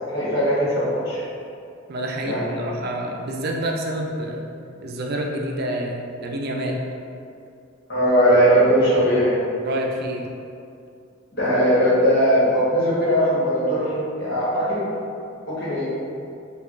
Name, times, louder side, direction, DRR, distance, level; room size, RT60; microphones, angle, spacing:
voice 1, 0.1-1.2 2.2-2.7 7.9-9.3 11.3-14.8 15.5-15.8, equal, 55° left, -9 dB, 1.3 m, -19 dB
voice 2, 1.9-4.4 4.8-6.8 9.6-10.2, right 1 dB, 50° right, 0 dB, 0.4 m, -28 dB
4.8 x 2.3 x 2.5 m, 2.4 s
head